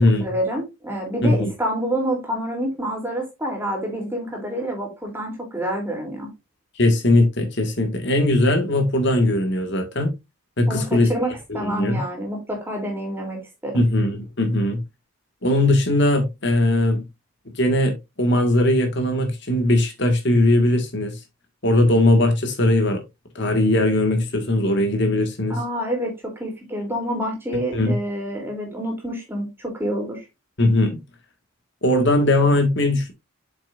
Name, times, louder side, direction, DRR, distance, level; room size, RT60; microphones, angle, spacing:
voice 1, 0.2-6.3 10.7-13.9 25.5-30.2, equal, 10° right, 3.1 m, -28 dB
voice 2, 6.8-10.1 10.6-11.1 11.5-12.0 13.7-14.8 15.4-17.0 17.6-17.9 18.2-21.1 21.6-23.0 23.4-25.6 27.7-27.9 30.6-31.0 31.8-33.1, left 1 dB, 55° left, 1.8 m, -19 dB
8.1 x 6.8 x 2.5 m
head